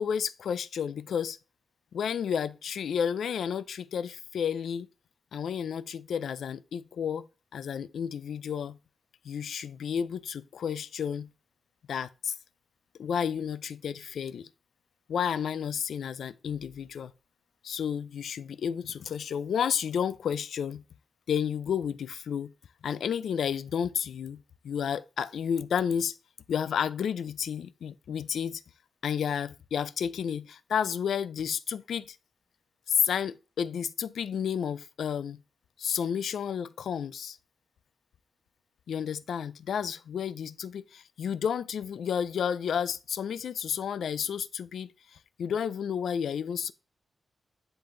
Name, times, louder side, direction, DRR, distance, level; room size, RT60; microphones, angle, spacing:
voice 1, 0.0-1.4 1.9-4.9 5.3-7.2 7.5-8.8 9.2-11.3 11.9-12.4 13.0-14.5 15.1-17.1 17.6-20.8 21.3-22.5 22.8-26.2 26.5-28.6 29.0-32.2 32.9-35.4 35.8-37.4 38.9-44.9 45.4-46.7, left 8 dB, 90° left, 0.4 m, -31 dB
10.0 x 3.8 x 3.8 m
wide cardioid pair, 155°, 0 cm